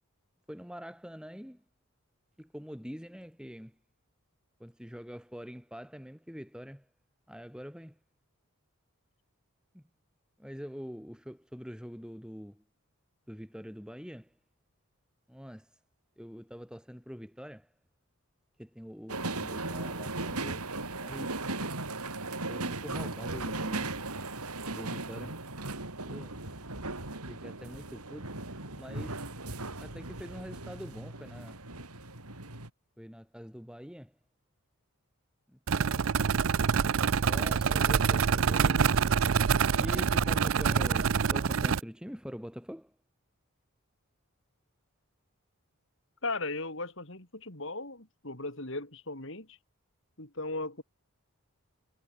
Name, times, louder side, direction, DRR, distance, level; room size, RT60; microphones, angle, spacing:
voice 1, 0.5-1.6 2.4-3.8 4.6-6.9 7.3-8.0 9.7-9.8 10.4-12.6 13.3-14.3 15.3-15.8 16.2-17.7 18.6-20.6 21.0-21.4 22.5-24.0 24.7-25.4 26.0-26.6 27.3-28.3 28.8-29.2 29.8-31.6 33.0-34.1 35.5-36.1 37.0-38.9 39.8-42.9, equal, 5° right, 7.8 m, -44 dB
sound 1, 19.1-32.7, right 2 dB, 85° right, 5.8 m, -37 dB
sound 2, 35.7-41.8, right 6 dB, 60° right, 0.5 m, -26 dB
voice 2, 46.2-49.6 50.2-50.8, left 2 dB, 55° left, 4.1 m, -37 dB
head